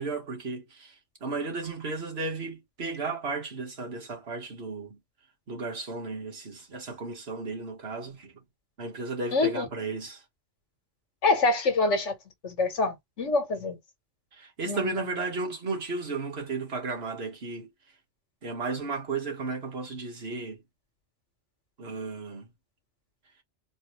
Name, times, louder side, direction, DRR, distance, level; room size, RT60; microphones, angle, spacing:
voice 1, 0.0-5.0 5.5-8.3 8.8-10.2 14.3-17.7 18.4-20.6 21.8-22.5, right 3 dB, 60° right, 1.7 m, -34 dB
voice 2, 9.3-9.7 11.2-12.1 12.4-13.8 14.7-15.1, left 3 dB, 85° left, 1.6 m, -26 dB
4.1 x 2.7 x 3.1 m
omnidirectional pair, 1.2 m